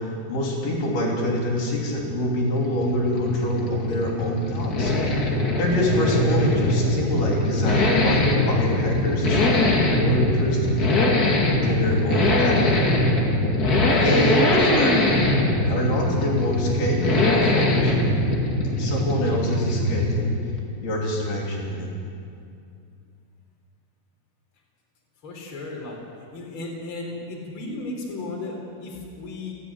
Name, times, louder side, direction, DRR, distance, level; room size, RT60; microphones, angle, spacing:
voice 1, 0.0-5.2 5.5-10.9 11.6-12.8 14.0-15.1 15.7-18.0 18.8-20.4 20.8-21.9, equal, 55° left, -2 dB, 5.0 m, -26 dB
Accelerating revving vroom, 2.1-20.3 20.6-20.7, left 2 dB, 80° left, 0.8 m, -22 dB
voice 2, 25.2-26.0 26.3-29.5, left 2 dB, 30° left, -1 dB, 4.2 m, -35 dB
29.5 x 10.0 x 10.0 m, 2.4 s
omnidirectional pair, 5.7 m